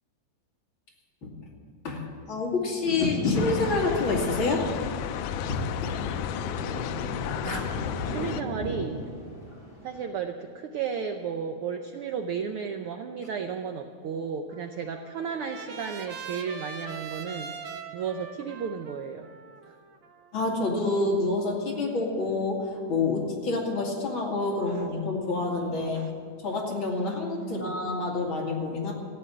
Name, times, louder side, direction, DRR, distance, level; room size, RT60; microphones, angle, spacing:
voice 1, 1.8-4.7 5.5-6.2 7.4-7.6 20.3-26.0 26.4-28.9, left 3 dB, 45° left, -2 dB, 2.9 m, -28 dB
Thunder, 2.9-10.0, right 1 dB, 10° left, 2.8 m, -39 dB
sound 1, 3.3-8.4, left 10 dB, 80° left, 1.4 m, -32 dB
voice 2, 7.4-7.7 8.0-9.0 9.8-17.5 17.9-19.3 24.7-24.9 25.9-26.1 27.4-27.8, right 6 dB, 85° right, 6 dB, 1.2 m, -34 dB
Trumpet, 14.5-20.7, right 5 dB, 60° right, 1.4 m, -42 dB
15.0 x 9.2 x 9.9 m, 2.1 s
omnidirectional pair, 3.4 m